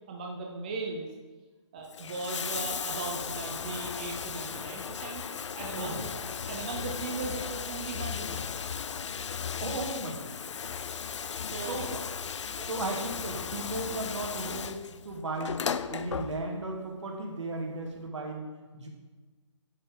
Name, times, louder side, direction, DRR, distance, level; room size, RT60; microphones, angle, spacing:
voice 1, 0.1-1.1 1.7-5.2 5.5-6.1 6.5-8.5 11.4-12.0 12.6-13.0, right 3 dB, 15° right, 0 dB, 0.4 m, -38 dB
Bathtub (filling or washing), 1.8-16.8 17.9-18.0, left 7 dB, 70° left, 0.4 m, -36 dB
voice 2, 5.7-6.3 9.6-10.4 11.6-12.1 12.6-15.6 15.9-18.9, right 2 dB, 70° right, 0 dB, 2.0 m, -36 dB
10.5 x 5.2 x 3.7 m, 1.3 s
hypercardioid pair, 165°, 16 cm